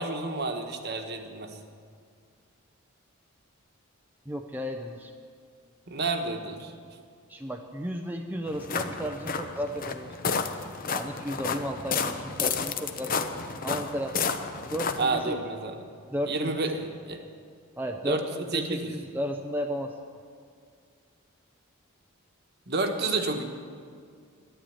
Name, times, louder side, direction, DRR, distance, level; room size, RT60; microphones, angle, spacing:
voice 1, 0.0-1.6 5.9-6.7 15.0-15.8 16.3-17.2 18.0-18.9 22.7-23.4, right 3 dB, 50° right, 5 dB, 1.3 m, -30 dB
voice 2, 4.3-5.1 7.3-10.1 10.9-14.2 14.6-15.3 16.1-16.6 17.8-19.9, equal, 10° right, 3 dB, 0.6 m, -34 dB
sound 1, 8.5-15.2, left 5 dB, 40° left, 0.7 m, -31 dB
12.5 x 10.5 x 8.7 m, 2.1 s
head